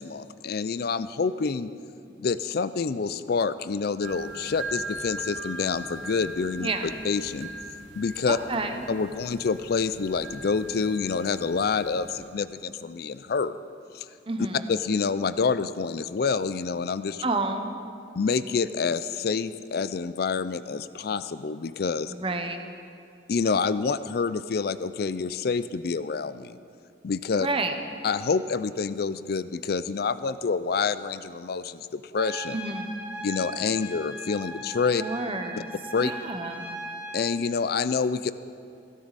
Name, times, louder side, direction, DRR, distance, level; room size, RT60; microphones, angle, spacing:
voice 1, 0.0-1.7 2.2-6.7 7.0-7.5 8.0-8.4 8.9-13.6 13.9-14.1 14.7-17.2 18.1-22.1 23.3-26.6 27.0-27.5 28.0-32.6 33.2-35.0 35.9-36.1 37.1-38.3, left 5 dB, 55° left, 14 dB, 0.4 m, -27 dB
sound 1, 4.0-12.3, right 2 dB, 80° right, 1.5 m, -40 dB
voice 2, 8.3-8.8 14.3-14.6 17.2-17.8 22.1-22.6 27.4-27.7 32.5-32.9 35.0-35.7 36.0-36.7, right 2 dB, 30° right, 6 dB, 0.9 m, -30 dB
Trumpet, 32.2-37.4, right 1 dB, 10° right, 3.7 m, -39 dB
16.5 x 13.0 x 4.1 m, 2.4 s
head